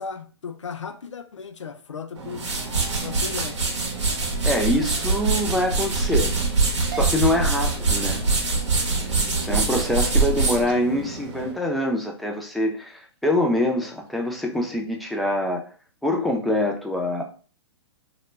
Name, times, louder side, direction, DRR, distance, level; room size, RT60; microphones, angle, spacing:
voice 1, 0.0-2.5 3.0-4.0, left 5 dB, 90° left, 0.4 m, -36 dB
sound 1, 2.1-11.5, right 3 dB, 80° right, 0.8 m, -24 dB
sound 2, 4.0-12.3 12.9-13.3 13.7-14.1 14.5-14.6 14.9-15.0, right 6 dB, 45° right, 0.7 m, -46 dB
voice 2, 4.4-6.3 6.9-8.2 9.4-15.6 16.0-17.2, left 1 dB, ahead, 0.3 m, -24 dB
2.1 x 2.1 x 3.1 m
hypercardioid pair, 120°, 15 cm